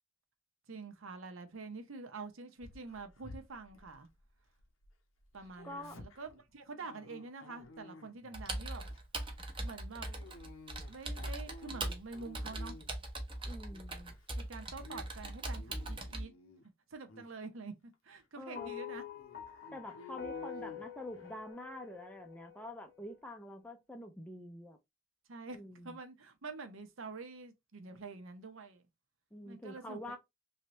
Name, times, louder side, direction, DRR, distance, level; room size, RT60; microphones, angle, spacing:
voice 1, 0.7-4.1 5.3-8.9 9.6-10.1 10.9-12.8 14.4-16.3 16.9-17.7 18.0-19.1 25.3-25.6 25.8-28.8 29.4-30.2, right 3 dB, 75° right, 0.8 m, -47 dB
Dog, 2.6-4.9 5.2-8.5 8.9-9.2 10.0-13.1 13.5-14.2 14.6-15.0 15.4-16.7 17.1-17.3 17.9-18.0 18.4-18.5 19.1-21.4, left 2 dB, 90° left, 0.8 m, -53 dB
voice 2, 5.6-6.0 13.4-14.1 18.4-18.7 19.7-24.8 25.5-26.0 29.3-30.2, left 1 dB, 5° left, 0.4 m, -46 dB
Computer keyboard, 8.3-16.2, right 2 dB, 25° right, 0.7 m, -41 dB
sound 1, 18.6-23.0, left 9 dB, 50° left, 0.7 m, -47 dB
3.2 x 2.7 x 3.0 m
head